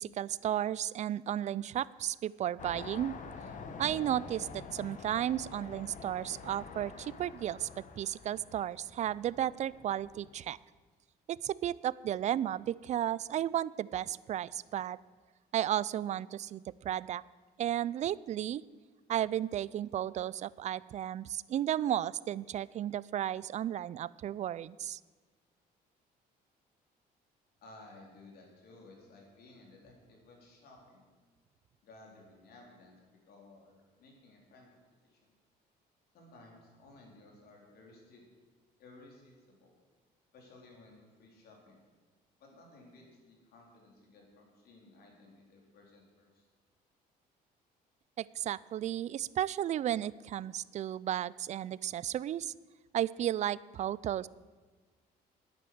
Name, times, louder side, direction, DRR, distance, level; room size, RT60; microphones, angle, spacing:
voice 1, 0.0-3.2 3.8-7.7 8.0-10.6 11.3-15.0 15.5-17.2 17.6-18.6 19.1-25.0 48.2-52.5 52.9-54.3, right 11 dB, 45° right, 21 dB, 0.4 m, -34 dB
sound 1, 2.6-10.5, left 5 dB, 50° left, 1.3 m, -47 dB
voice 2, 27.6-31.0 31.8-33.0 33.3-34.8 35.1-35.2 36.1-38.2 38.8-39.7 40.3-41.8 42.4-46.5, left 2 dB, 65° left, 0 dB, 3.9 m, -57 dB
10.5 x 9.2 x 7.8 m, 1.4 s
cardioid pair, 110°, 17 cm